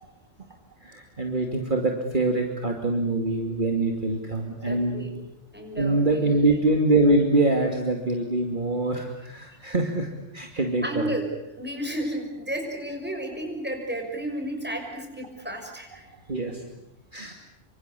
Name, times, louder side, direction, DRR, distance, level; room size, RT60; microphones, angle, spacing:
voice 1, 0.8-5.1 5.8-10.1 10.3-11.1 16.3-16.6 17.1-17.3, right 2 dB, 40° right, 2 dB, 2.7 m, -24 dB
voice 2, 4.6-5.1 5.5-6.5 10.8-16.1, right 1 dB, 10° right, 2 dB, 5.9 m, -32 dB
27.0 x 25.5 x 8.4 m, 0.87 s
omnidirectional pair, 1.2 m